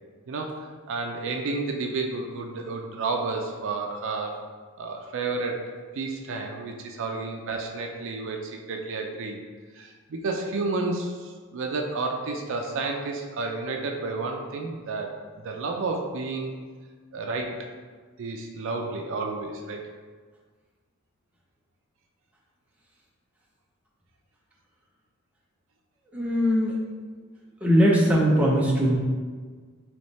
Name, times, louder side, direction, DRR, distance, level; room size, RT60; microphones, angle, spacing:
voice 1, 0.3-4.4 4.8-5.6 5.9-9.4 9.8-16.5 17.1-17.6 18.2-19.8, right 3 dB, 65° right, 3 dB, 0.4 m, -31 dB
voice 2, 26.1-27.1 27.6-28.9, equal, 5° right, -4 dB, 0.6 m, -21 dB
3.4 x 3.1 x 4.1 m, 1.5 s
head